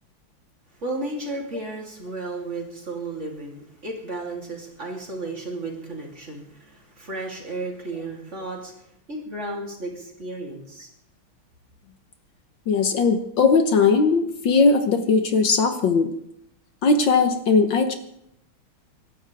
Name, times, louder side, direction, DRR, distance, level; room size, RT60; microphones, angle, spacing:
voice 1, 0.8-8.7 9.1-10.9, right 2 dB, 35° right, -1 dB, 3.5 m, -33 dB
voice 2, 12.7-16.1 16.8-17.9, left 4 dB, 65° left, 7 dB, 1.7 m, -19 dB
25.0 x 12.5 x 3.5 m, 0.74 s
omnidirectional pair, 2.3 m